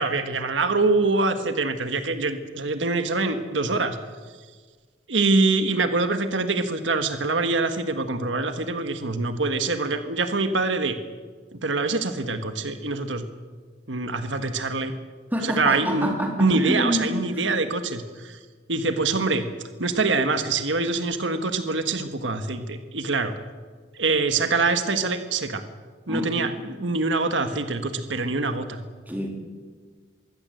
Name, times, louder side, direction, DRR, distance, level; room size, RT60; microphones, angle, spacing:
voice 1, 0.0-4.0 5.1-11.0 11.6-13.2 13.9-14.9 15.6-18.3 18.7-19.5 19.8-23.3 24.0-25.6 26.1-26.5 26.8-28.8, right 3 dB, 85° right, 8 dB, 1.5 m, -24 dB
voice 2, 15.3-17.1 17.3-17.4 26.1-26.5 29.1-29.3, equal, 10° right, 1 dB, 3.5 m, -27 dB
23.0 x 16.0 x 7.8 m, 1.5 s
head